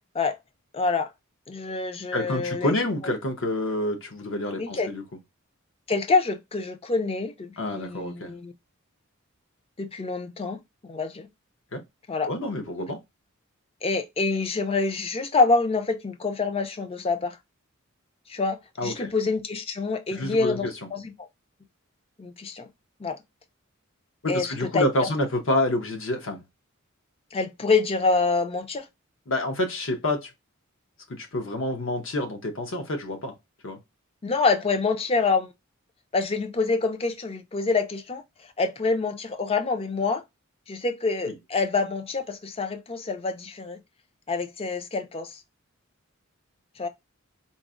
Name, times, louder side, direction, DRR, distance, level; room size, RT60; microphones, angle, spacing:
voice 1, 0.7-1.1 1.5-2.7 4.6-4.9 5.9-8.5 9.8-11.3 12.1-12.3 13.8-17.4 18.3-21.3 22.2-22.7 23.0-23.2 24.3-25.1 27.3-28.9 34.2-35.5 36.1-38.2 38.6-40.2 40.7-43.8 44.3-45.4 46.8-46.9, left 4 dB, 30° left, 0.4 m, -26 dB
voice 2, 2.1-5.0 7.6-8.3 11.7-11.8 12.3-13.0 18.8-19.1 20.1-20.7 24.2-26.4 29.3-30.3 31.1-33.3 33.6-33.8 41.2-41.3, left 1 dB, 65° left, 0.8 m, -28 dB
4.0 x 2.1 x 2.4 m
head